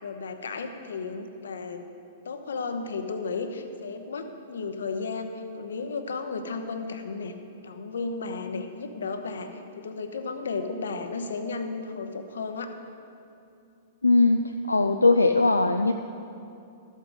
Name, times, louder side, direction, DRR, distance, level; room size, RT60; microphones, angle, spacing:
voice 1, 0.0-1.9 2.2-7.3 7.6-12.7, left 4 dB, 65° left, 7 dB, 0.8 m, -34 dB
voice 2, 14.0-14.4 14.7-15.9, left 3 dB, 85° left, 6 dB, 0.4 m, -20 dB
13.5 x 8.2 x 3.9 m, 2.6 s
figure-of-eight pair, 105°, 0 cm